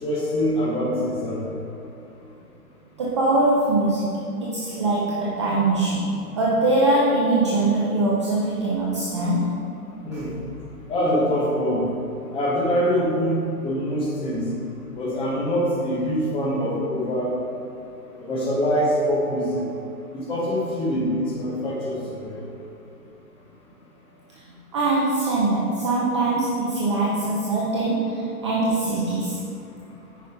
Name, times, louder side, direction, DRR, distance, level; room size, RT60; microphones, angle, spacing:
voice 1, 0.0-1.4 10.0-10.3 10.9-11.9 12.3-14.4 15.0-17.3 18.2-19.6 20.1-22.4, equal, 10° left, -4 dB, 1.0 m, -24 dB
voice 2, 3.0-4.1 4.4-9.5 10.1-10.2 24.7-29.4, right 2 dB, 20° right, -6 dB, 0.5 m, -22 dB
9.2 x 5.3 x 3.8 m, 2.8 s
hypercardioid pair, 140°, 46 cm